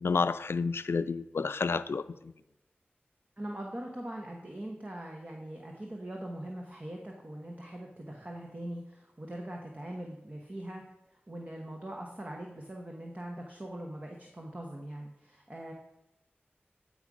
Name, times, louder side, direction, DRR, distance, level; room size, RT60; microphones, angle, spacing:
voice 1, 0.0-2.0, left 4 dB, 80° left, 13 dB, 0.3 m, -30 dB
voice 2, 3.4-10.8 11.1-15.7, right 1 dB, 35° right, 1 dB, 1.2 m, -42 dB
8.9 x 4.9 x 5.3 m, 0.92 s
wide cardioid pair, 50°, 4 cm